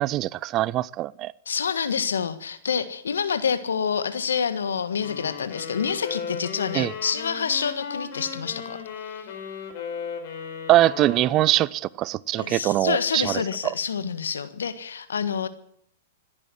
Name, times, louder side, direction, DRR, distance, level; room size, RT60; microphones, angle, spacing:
voice 1, 0.0-1.3 6.7-6.9 10.7-13.4, right 15 dB, 35° right, 0.5 m, -22 dB
voice 2, 1.4-9.3 12.4-15.5, left 6 dB, 80° left, 1.5 m, -27 dB
sound 1, 5.0-11.8, left 6 dB, 55° left, 4.8 m, -36 dB
15.0 x 11.0 x 8.3 m
hypercardioid pair, 110°, 0 cm